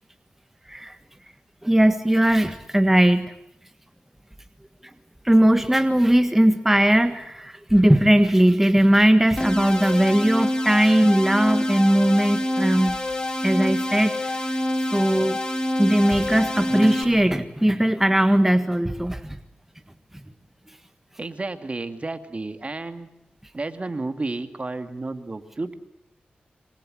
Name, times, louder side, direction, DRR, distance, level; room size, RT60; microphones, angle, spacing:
voice 1, 1.6-3.3 5.2-13.0 13.4-14.3 14.9-15.4 15.8-19.4, right 1 dB, 10° right, 8 dB, 1.6 m, -19 dB
sound 1, 9.4-17.0, left 1 dB, 25° left, 4.9 m, -26 dB
voice 2, 21.2-23.1 23.5-25.7, right 2 dB, 40° right, 8 dB, 2.5 m, -31 dB
26.5 x 24.5 x 7.9 m, 0.78 s
cardioid pair, 60°, 3 cm